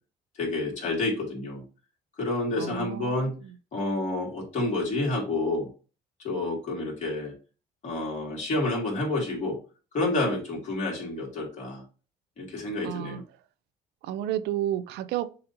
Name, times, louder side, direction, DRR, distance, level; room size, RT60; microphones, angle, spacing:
voice 1, 0.4-1.6 2.2-3.3 3.7-5.7 6.2-7.3 7.8-9.6 9.9-11.8 12.4-13.2, left 2 dB, 45° left, 2.5 m, -29 dB
voice 2, 2.6-3.3 12.8-13.2 14.0-15.3, right 11 dB, 80° right, 0.5 m, -31 dB
6.6 x 2.8 x 2.7 m
cardioid pair, 110°, 17 cm